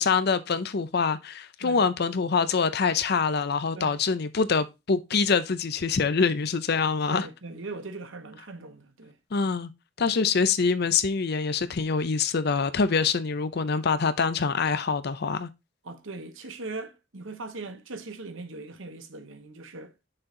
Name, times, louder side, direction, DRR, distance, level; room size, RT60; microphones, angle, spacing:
voice 1, 0.0-7.3 9.3-9.7 10.0-15.5, left 5 dB, 55° left, 0.6 m, -25 dB
voice 2, 7.1-9.2 10.0-10.2 15.8-20.1, right 3 dB, 85° right, 1.1 m, -40 dB
6.5 x 4.4 x 3.8 m
head